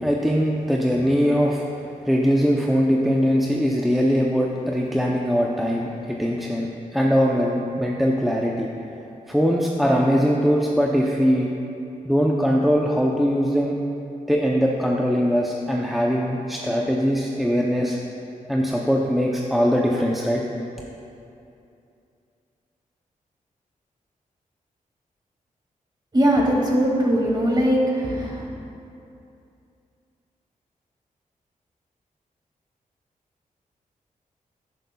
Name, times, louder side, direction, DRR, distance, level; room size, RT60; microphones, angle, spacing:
voice 1, 0.0-1.6 2.1-6.7 6.9-8.7 9.3-11.5 12.0-13.8 14.3-18.0 18.5-20.4, equal, ahead, -2 dB, 0.6 m, -21 dB
voice 2, 26.1-28.5, equal, 30° right, -3 dB, 2.1 m, -20 dB
10.5 x 10.5 x 2.3 m, 2.7 s
cardioid pair, 85°, 14 cm